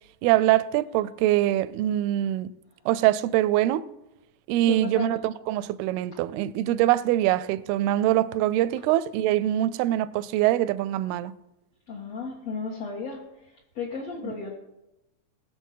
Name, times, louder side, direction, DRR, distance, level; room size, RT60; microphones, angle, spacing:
voice 1, 0.2-2.5 2.9-3.8 4.5-11.3 14.2-14.3, right 14 dB, 85° right, 2.5 m, -23 dB
voice 2, 4.7-5.1 11.9-13.2 13.8-14.6, left 5 dB, 55° left, 2.0 m, -33 dB
19.5 x 7.2 x 5.5 m
omnidirectional pair, 4.4 m